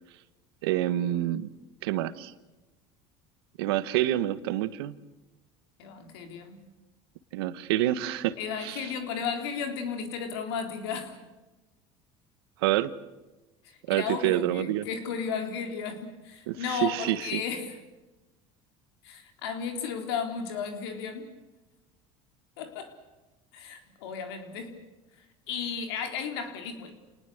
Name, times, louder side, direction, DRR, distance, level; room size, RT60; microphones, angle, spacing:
voice 1, 0.6-1.5 1.8-2.3 3.6-5.0 7.3-8.9 12.6-12.9 13.9-14.9 16.5-17.4, right 13 dB, 90° right, 14 dB, 1.3 m, -27 dB
voice 2, 5.8-6.6 8.4-11.2 13.6-17.8 19.0-21.3 22.6-23.0 23.5-24.8 25.2-26.9, left 6 dB, 90° left, 5 dB, 3.8 m, -34 dB
28.0 x 19.5 x 8.1 m, 1.1 s
supercardioid pair, 105°, 13 cm